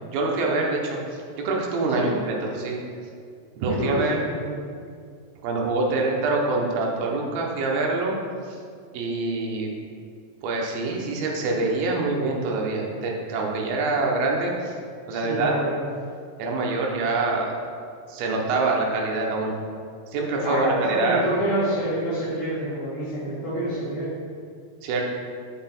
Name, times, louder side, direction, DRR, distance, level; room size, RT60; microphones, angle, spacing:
voice 1, 0.1-1.0 1.4-2.8 3.6-4.2 5.4-8.2 8.9-9.7 10.4-14.8 15.1-15.5 16.4-17.5 18.1-19.5 20.1-21.3 24.8-25.1, right 3 dB, 75° right, -1 dB, 2.5 m, -25 dB
voice 2, 3.7-4.6 15.1-15.8 20.4-24.1, equal, 60° left, -10 dB, 2.1 m, -27 dB
5.9 x 5.8 x 4.3 m, 2.2 s
omnidirectional pair, 4.9 m